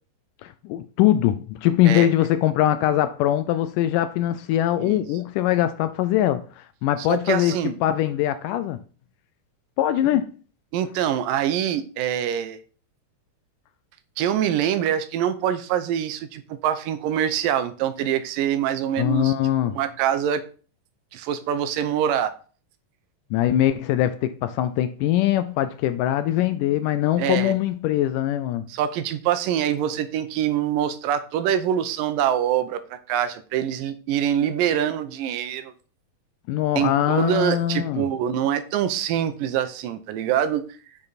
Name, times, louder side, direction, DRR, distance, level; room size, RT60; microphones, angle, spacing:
voice 1, 0.4-8.8 9.8-10.3 19.0-19.8 23.3-28.7 36.5-38.1, left 12 dB, 80° left, 2.0 m, -22 dB
voice 2, 7.0-7.7 10.7-12.6 14.2-19.3 19.8-20.4 21.1-22.3 27.2-27.5 28.7-35.7 36.8-40.8, right 10 dB, 80° right, 2.3 m, -24 dB
8.6 x 6.7 x 4.1 m
omnidirectional pair, 4.1 m